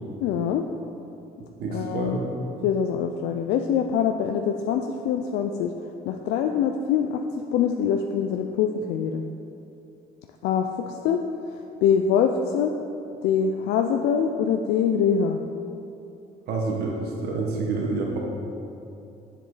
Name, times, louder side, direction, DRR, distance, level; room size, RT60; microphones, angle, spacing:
voice 1, 0.2-0.6 1.7-2.2 2.6-5.7 6.1-7.2 7.5-9.2 10.4-11.2 11.8-12.7 13.2-15.4, left 7 dB, 85° left, 4 dB, 0.4 m, -24 dB
voice 2, 1.6-2.2 16.5-18.2, right 3 dB, 65° right, -1 dB, 1.2 m, -28 dB
7.3 x 7.2 x 4.1 m, 2.7 s
cardioid pair, 110°, 17 cm